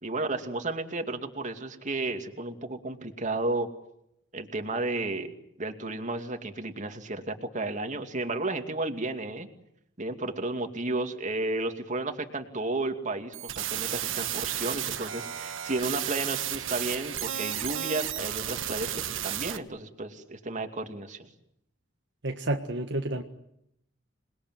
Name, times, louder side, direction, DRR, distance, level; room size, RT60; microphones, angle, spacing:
voice 1, 0.0-3.7 4.3-5.3 5.6-9.5 10.0-21.3, right 2 dB, 40° right, 2.6 m, -33 dB
sound 1, 13.3-19.6, right 10 dB, 90° right, 1.4 m, -33 dB
voice 2, 22.2-23.2, right 1 dB, 65° right, 1.6 m, -30 dB
28.0 x 21.5 x 9.4 m
head